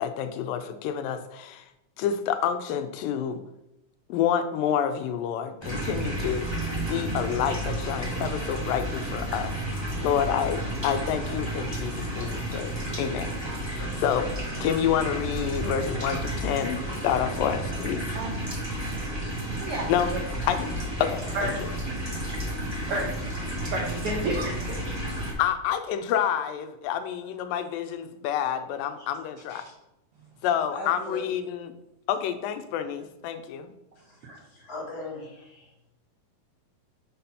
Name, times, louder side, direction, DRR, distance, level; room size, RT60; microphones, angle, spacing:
voice 1, 0.0-1.7 2.0-3.4 4.1-9.5 10.0-12.7 13.0-13.3 13.6-14.3 14.6-18.0 19.9-20.1 20.5-21.5 25.4-29.6 30.4-31.7 32.1-33.7, left 9 dB, 90° left, 9 dB, 2.3 m, -28 dB
sound 1, 5.6-25.3, right 1 dB, 20° right, 0.8 m, -32 dB
voice 2, 23.7-24.8 29.5-29.6 34.2-34.4, right 2 dB, 75° right, -1 dB, 1.3 m, -30 dB
voice 3, 30.7-31.2 34.0-34.2 34.5-35.7, left 1 dB, 35° left, -5 dB, 1.8 m, -38 dB
6.1 x 4.2 x 5.5 m, 0.87 s
omnidirectional pair, 3.9 m